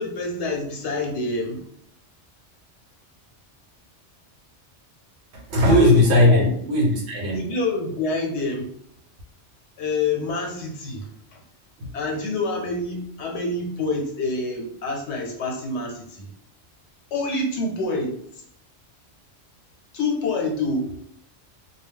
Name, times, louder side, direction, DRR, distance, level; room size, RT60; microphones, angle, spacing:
voice 1, 0.0-1.6 5.6-6.5 7.3-8.7 9.8-11.4 11.9-16.3 17.1-18.2 19.9-20.9, left 3 dB, 75° left, 1 dB, 1.0 m, -27 dB
voice 2, 5.3-7.6 11.8-11.9, left 1 dB, 75° right, 0 dB, 1.0 m, -18 dB
2.3 x 2.1 x 3.5 m, 0.66 s
omnidirectional pair, 1.2 m